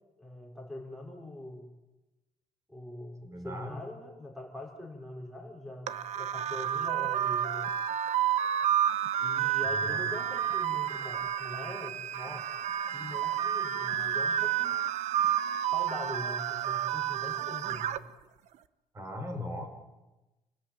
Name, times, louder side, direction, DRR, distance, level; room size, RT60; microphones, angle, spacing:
voice 1, 0.2-1.7 2.7-7.7 9.2-12.5 12.9-14.9 15.7-18.0, left 1 dB, ahead, 0 dB, 4.8 m, -43 dB
voice 2, 3.2-3.8 9.6-10.1 18.9-19.7, left 1 dB, 25° right, 5 dB, 4.5 m, -39 dB
sound 1, 5.9-18.0, right 10 dB, 70° right, 1.1 m, -30 dB
28.0 x 17.5 x 9.2 m, 1.1 s
cardioid pair, 145°, 12 cm